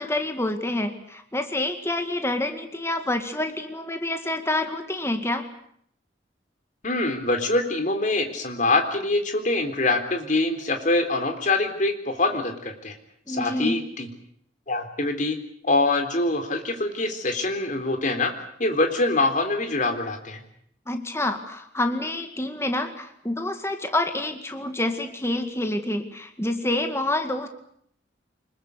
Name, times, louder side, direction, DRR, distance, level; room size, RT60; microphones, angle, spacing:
voice 1, 0.0-5.4 13.3-13.8 20.9-27.5, left 1 dB, 15° left, 6 dB, 2.1 m, -27 dB
voice 2, 6.8-12.9 13.3-14.1 14.7-15.4 15.6-18.3 18.6-20.4, left 2 dB, 45° left, 6 dB, 3.8 m, -24 dB
25.5 x 21.5 x 8.4 m, 0.68 s
head